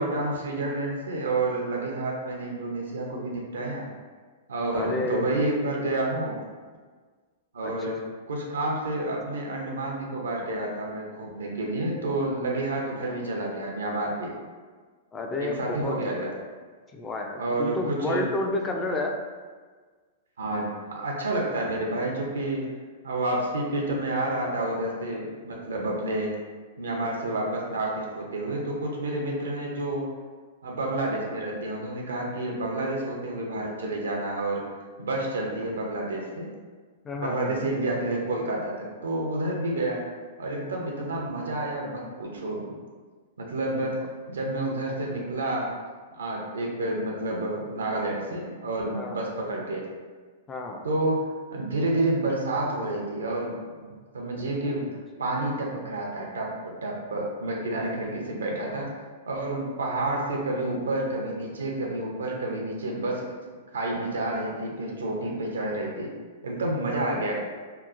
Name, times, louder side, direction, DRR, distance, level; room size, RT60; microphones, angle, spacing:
voice 1, 0.0-3.9 4.5-6.4 7.5-8.0 8.3-14.3 15.4-16.3 17.4-18.3 20.4-22.7 23.0-26.3 26.8-30.1 30.6-34.7 35.0-36.5 37.2-40.0 40.4-42.8 43.4-45.7 46.1-49.9 50.8-53.9 54.1-54.9 55.2-58.9 59.3-63.2 63.7-66.1 66.4-67.4, right 2 dB, 80° right, -1 dB, 0.6 m, -29 dB
voice 2, 4.7-5.3 7.6-7.7 15.1-16.3 16.9-19.1 37.0-37.6 48.9-49.2 50.5-50.8, left 2 dB, 20° left, 2 dB, 0.4 m, -30 dB
2.9 x 2.0 x 2.4 m, 1.5 s
hypercardioid pair, 110°, 0 cm